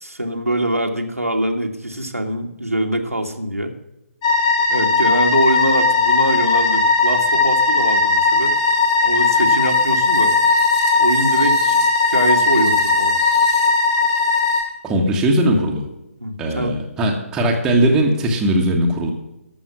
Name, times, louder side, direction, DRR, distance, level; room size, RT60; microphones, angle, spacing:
voice 1, 0.0-3.7 4.7-8.6 9.0-10.3 11.0-13.2 16.2-16.7, right 1 dB, 85° right, 3 dB, 1.8 m, -23 dB
sound 1, 4.2-14.6, left 3 dB, 25° left, 2.0 m, -17 dB
voice 2, 14.8-15.9 16.4-19.1, right 1 dB, 10° right, 0 dB, 1.4 m, -19 dB
13.5 x 6.4 x 6.1 m, 0.93 s
figure-of-eight pair, 140°, 8 cm